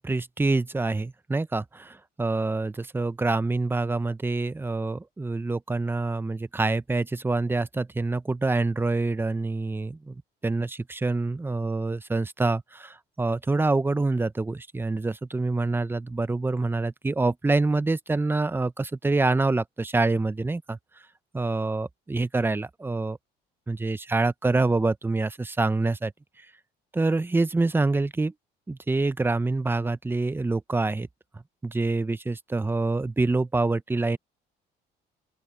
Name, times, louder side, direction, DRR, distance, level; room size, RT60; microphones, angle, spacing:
voice 1, 0.0-10.1 10.4-20.8 21.3-23.2 23.7-26.1 26.9-28.3 28.7-31.1 31.3-34.2, right 3 dB, 10° right, 0.7 m, -26 dB
open air
cardioid pair, 100°, 18 cm